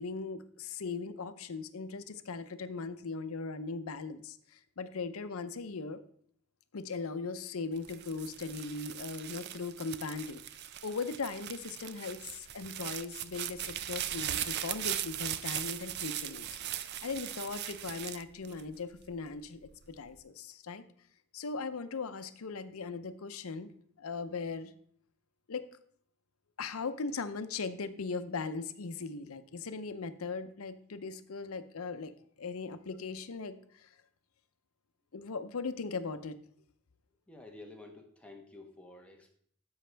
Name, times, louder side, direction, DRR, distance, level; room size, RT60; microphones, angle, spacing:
voice 1, 0.0-6.0 6.7-10.4 10.8-16.5 16.8-20.8 21.3-23.7 24.0-24.7 25.5-25.7 26.6-32.1 32.4-33.9 35.1-36.4, left 4 dB, 80° left, 12 dB, 0.6 m, -39 dB
sound 1, 7.8-19.1 19.6-20.2, right 11 dB, 50° right, 0.4 m, -39 dB
voice 2, 37.3-39.3, left 2 dB, 5° left, 1 dB, 1.1 m, -51 dB
12.5 x 5.5 x 3.4 m, 0.64 s
head